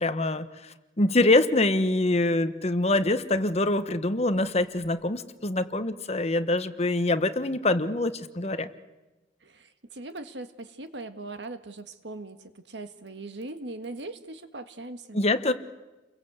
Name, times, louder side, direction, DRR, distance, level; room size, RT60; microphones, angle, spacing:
voice 1, 0.0-8.7 15.1-15.5, left 2 dB, 35° left, 11 dB, 1.2 m, -25 dB
voice 2, 9.4-15.2, right 2 dB, 75° right, 9 dB, 1.7 m, -40 dB
30.0 x 22.5 x 8.1 m, 1.1 s
head